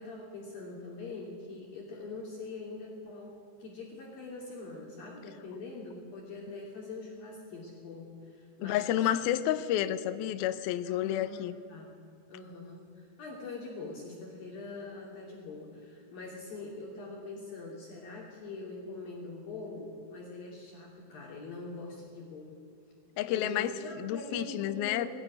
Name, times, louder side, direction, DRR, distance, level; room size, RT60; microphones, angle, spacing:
voice 1, 0.0-9.1 10.8-11.9 12.3-22.6 23.3-25.1, left 3 dB, 55° left, -2 dB, 4.5 m, -43 dB
voice 2, 8.6-11.6 23.2-23.7 24.0-25.1, left 12 dB, 75° left, 10 dB, 2.4 m, -30 dB
22.5 x 19.0 x 9.9 m, 2.2 s
omnidirectional pair, 5.2 m